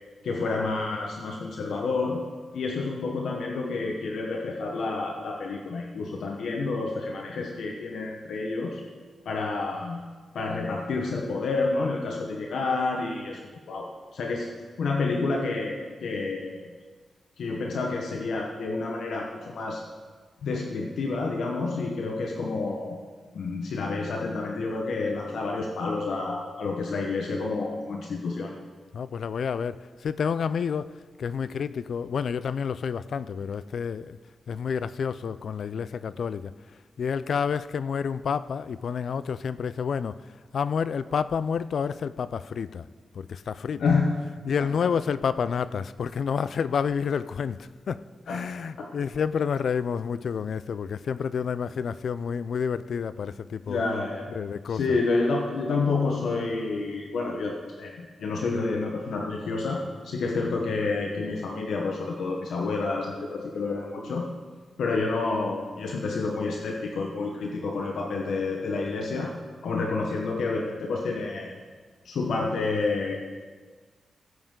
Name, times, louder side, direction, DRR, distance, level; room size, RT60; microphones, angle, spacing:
voice 1, 0.2-2.2 2.5-8.8 9.2-10.0 10.3-13.4 13.7-14.5 14.8-16.7 17.4-19.8 20.4-23.0 23.3-28.5 43.8-44.1 44.6-44.9 48.3-48.4 48.8-48.9 53.7-54.3 54.7-64.2 64.8-69.3 69.6-71.5 72.0-73.2, left 3 dB, 80° left, 0 dB, 1.0 m, -29 dB
voice 2, 28.9-34.2 34.5-42.8 43.1-44.0 44.2-53.9 54.3-55.0, left 6 dB, 65° left, 15 dB, 0.3 m, -29 dB
16.0 x 7.9 x 3.8 m, 1.5 s
wide cardioid pair, 120°, 0 cm